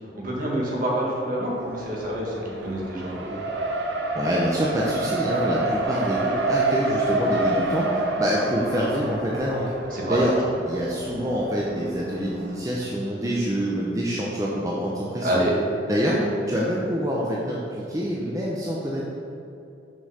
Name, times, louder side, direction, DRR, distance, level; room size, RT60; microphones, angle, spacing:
voice 1, 0.1-3.3 9.9-10.2 15.2-15.5, right 1 dB, 50° right, -3 dB, 1.7 m, -27 dB
Race car auto racing, 1.5-12.5, right 2 dB, 70° right, 0.9 m, -28 dB
voice 2, 4.1-9.7 10.1-10.3 10.6-15.3 15.9-16.2 16.5-19.0, equal, 20° right, -4 dB, 0.7 m, -26 dB
6.4 x 5.5 x 5.6 m, 2.7 s
head